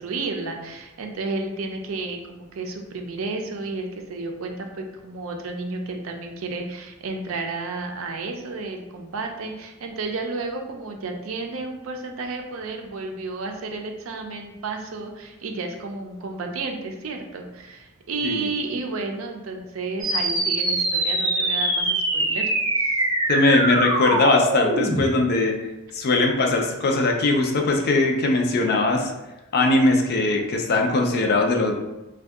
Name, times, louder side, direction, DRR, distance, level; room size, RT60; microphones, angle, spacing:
voice 1, 0.0-22.5 22.8-23.0, right 3 dB, 75° right, 3 dB, 0.5 m, -32 dB
sound 1, 20.0-25.0, right 1 dB, 20° right, 0.5 m, -23 dB
voice 2, 23.3-25.5 25.9-29.1 29.5-31.7, left 2 dB, 50° left, 2 dB, 0.4 m, -20 dB
2.6 x 2.2 x 3.4 m, 1.0 s
head